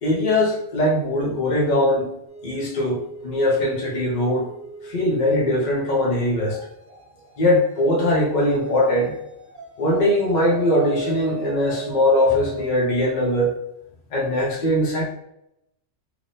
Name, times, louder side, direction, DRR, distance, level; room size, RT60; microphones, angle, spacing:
voice 1, 0.0-2.1 2.4-4.5 4.8-6.6 7.4-9.1 9.8-13.6 14.1-15.0, left 1 dB, 40° left, -3 dB, 0.8 m, -21 dB
sound 1, 2.3-13.2, right 2 dB, 20° right, 0.5 m, -39 dB
3.5 x 3.0 x 2.6 m, 0.80 s
omnidirectional pair, 1.3 m